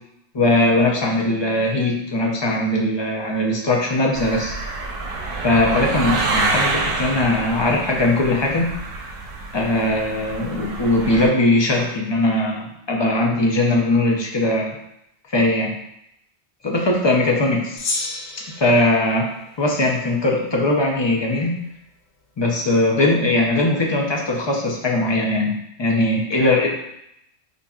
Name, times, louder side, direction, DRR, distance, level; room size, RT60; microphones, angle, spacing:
voice 1, 0.3-4.6 5.4-8.7 9.5-14.7 15.3-15.8 16.6-17.8 18.6-19.3 19.6-21.5 22.4-26.7, left 2 dB, 40° left, -1 dB, 0.4 m, -20 dB
sound 1, 4.1-11.3, right 3 dB, 65° right, 0.7 m, -27 dB
Gong, 17.8-20.4, left 3 dB, 75° left, 0.9 m, -32 dB
5.0 x 2.6 x 2.3 m, 0.79 s
omnidirectional pair, 1.1 m